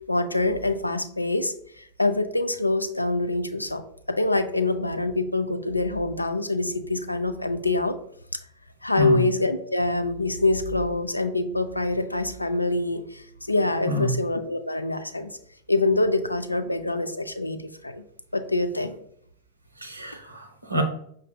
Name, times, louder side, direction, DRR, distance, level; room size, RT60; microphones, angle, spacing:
voice 1, 0.1-3.8 4.1-8.0 8.8-15.3 15.7-18.0 18.3-19.0, left 2 dB, 85° left, 9 dB, 0.3 m, -25 dB
voice 2, 13.9-14.2 19.8-20.8, equal, 85° right, 4 dB, 0.6 m, -26 dB
5.6 x 2.6 x 2.2 m, 0.67 s
figure-of-eight pair, 90°, 0 cm